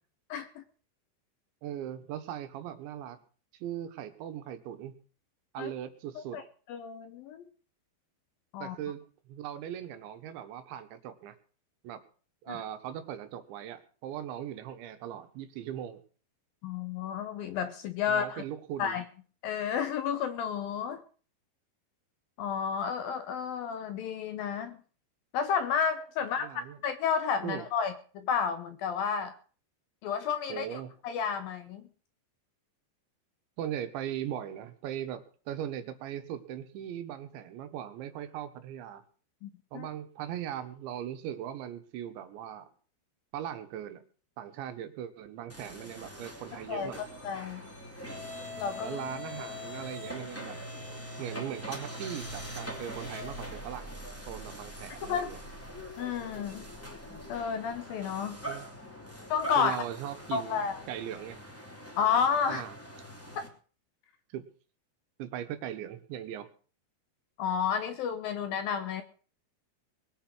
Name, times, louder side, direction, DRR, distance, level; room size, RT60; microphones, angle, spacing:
voice 1, 0.3-0.6 5.6-5.7 6.2-6.4 6.7-7.4 8.5-8.8 12.5-12.6 16.6-18.4 18.8-19.0 19.4-21.0 22.4-24.8 25.3-29.4 30.0-31.8 39.4-39.9 46.7-46.9 47.2-47.7 48.6-49.0 55.1-55.3 56.0-56.7 57.3-58.4 59.3-59.8 60.3-60.8 62.0-62.6 63.4-63.5 67.4-69.0, left 7 dB, 75° left, 10 dB, 2.3 m, -31 dB
voice 2, 1.6-3.2 3.5-4.9 5.5-6.4 8.6-9.0 9.3-11.4 11.8-12.0 12.4-16.0 18.1-19.0 26.4-26.8 27.4-27.7 30.5-30.9 33.6-39.0 39.7-42.7 43.3-44.0 44.4-47.0 48.8-50.6 51.2-54.0 54.3-55.4 58.5-58.7 59.6-61.4 62.5-62.8 64.3-64.5 65.2-66.5, right 10 dB, 85° right, 9 dB, 3.7 m, -39 dB
sound 1, 45.5-63.5, equal, 5° left, 2.0 m, -43 dB
21.0 x 8.5 x 6.2 m, 0.41 s
omnidirectional pair, 5.1 m